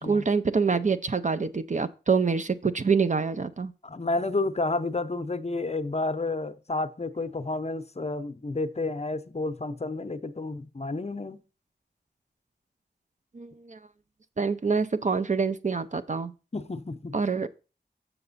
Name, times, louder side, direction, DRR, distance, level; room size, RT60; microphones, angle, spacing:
voice 1, 0.0-3.7 13.3-13.8 14.4-16.3 17.1-17.5, right 5 dB, 45° right, 0.5 m, -26 dB
voice 2, 3.8-11.4 16.5-17.2, left 2 dB, 35° left, 0.7 m, -30 dB
6.9 x 6.5 x 4.1 m
wide cardioid pair, 65°, 18 cm